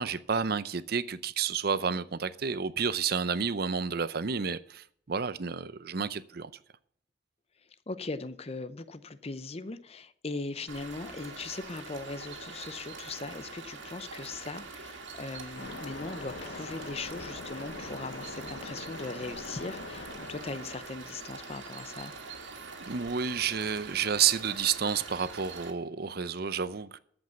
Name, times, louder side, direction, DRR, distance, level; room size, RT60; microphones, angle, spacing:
voice 1, 0.0-6.5 22.6-27.0, right 6 dB, 50° right, 0.6 m, -30 dB
voice 2, 7.9-22.1, left 3 dB, 30° left, 0.6 m, -39 dB
sound 1, 10.7-25.7, right 4 dB, 75° right, 2.0 m, -44 dB
Waves surf, 15.6-20.8, left 3 dB, 65° left, 1.0 m, -43 dB
13.5 x 5.3 x 7.0 m
head